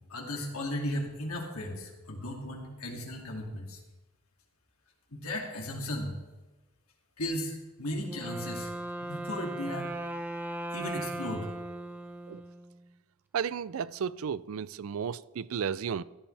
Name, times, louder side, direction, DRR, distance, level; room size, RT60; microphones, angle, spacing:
voice 1, 0.1-3.8 5.1-6.1 7.2-8.7 9.0-9.9 10.7-11.5, left 1 dB, 80° left, 2.5 m, -36 dB
Wind instrument woodwind instrument, 8.0-12.9, right 1 dB, 10° right, 0.8 m, -38 dB
voice 2, 13.3-16.0, right 7 dB, 70° right, 0.4 m, -33 dB
15.5 x 11.5 x 3.3 m
head